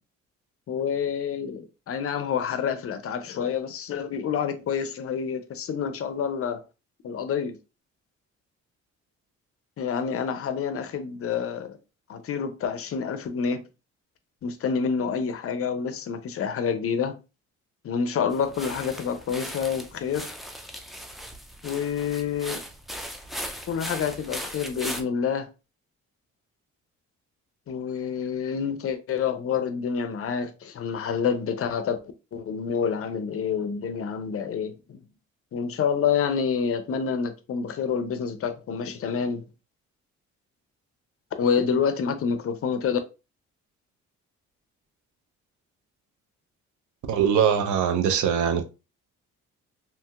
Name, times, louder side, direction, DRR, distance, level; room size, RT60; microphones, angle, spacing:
voice 1, 0.7-6.6 7.0-7.6 9.8-11.8 12.1-13.6 14.4-17.2 17.8-20.4 21.6-22.6 23.7-25.5 27.7-35.0 35.5-39.4 41.4-43.0, left 6 dB, 50° left, 0.5 m, -28 dB
sound 1, 18.3-25.0, equal, ahead, 0.4 m, -38 dB
voice 2, 47.1-48.6, right 8 dB, 80° right, 0.6 m, -22 dB
2.9 x 2.7 x 2.3 m
cardioid pair, 90°, 30 cm